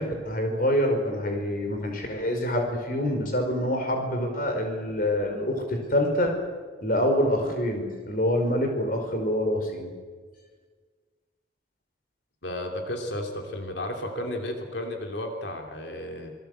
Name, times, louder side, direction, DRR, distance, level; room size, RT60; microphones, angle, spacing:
voice 1, 0.0-6.3 6.8-9.9, left 1 dB, 45° left, 4 dB, 4.9 m, -26 dB
voice 2, 12.4-16.3, left 1 dB, 70° left, 3 dB, 2.9 m, -33 dB
27.0 x 18.5 x 8.0 m, 1.5 s
head